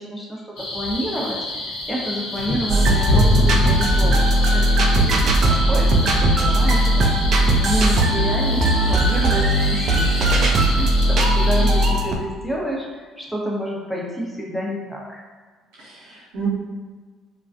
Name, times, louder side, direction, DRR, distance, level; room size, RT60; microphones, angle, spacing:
voice 1, 0.0-7.1 7.6-15.2, equal, ahead, -3 dB, 0.7 m, -29 dB
sound 1, 0.6-11.9, left 1 dB, 60° left, 0.7 m, -27 dB
sound 2, 2.7-12.2, right 1 dB, 50° right, 0.3 m, -18 dB
voice 2, 6.2-6.7 15.8-16.5, right 4 dB, 75° right, -8 dB, 0.8 m, -34 dB
2.3 x 2.2 x 2.4 m, 1.4 s
hypercardioid pair, 55°, 0 cm